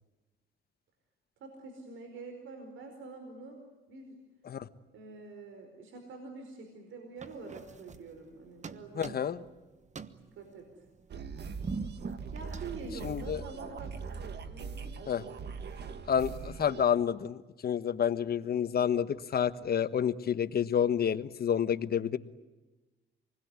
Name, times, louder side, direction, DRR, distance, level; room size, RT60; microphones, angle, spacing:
voice 1, 1.4-4.2 4.9-9.2 10.3-10.7 12.3-14.9, right 3 dB, 80° right, 5 dB, 4.9 m, -46 dB
sound 1, 7.2-8.3 8.6-9.5 9.8-13.6, right 4 dB, 35° right, 1.3 m, -43 dB
voice 2, 9.0-9.4 13.0-13.4 15.1-15.2 16.1-22.2, left 8 dB, 50° left, 12 dB, 1.2 m, -29 dB
sound 2, 11.1-16.9, right 5 dB, 60° right, 1.8 m, -41 dB
27.5 x 20.5 x 9.6 m, 1.1 s
cardioid pair, 90°, 20 cm